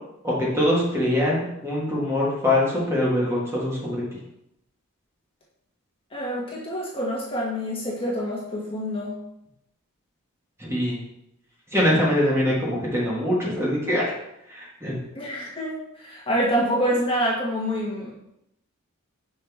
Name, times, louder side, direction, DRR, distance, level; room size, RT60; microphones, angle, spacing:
voice 1, 0.2-4.0 10.6-11.0 11.7-14.0 14.5-15.0, left 1 dB, 10° right, -5 dB, 1.6 m, -23 dB
voice 2, 6.1-9.2 15.1-18.1, equal, 25° left, -5 dB, 1.5 m, -26 dB
5.9 x 5.3 x 3.5 m, 0.82 s
head